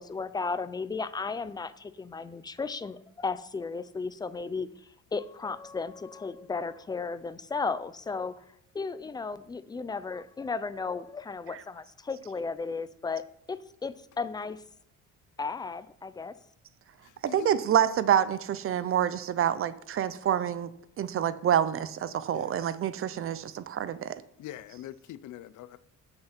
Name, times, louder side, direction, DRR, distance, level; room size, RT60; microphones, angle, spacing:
voice 1, 0.0-4.7 5.1-8.4 8.7-13.2 13.5-14.6 15.4-16.3, left 4 dB, 15° left, 0.3 m, -34 dB
voice 2, 17.3-20.7 21.0-24.1, right 9 dB, 45° right, 0.5 m, -27 dB
voice 3, 24.4-25.8, left 13 dB, 70° left, 0.5 m, -43 dB
8.0 x 6.7 x 5.9 m
cardioid pair, 160°, 31 cm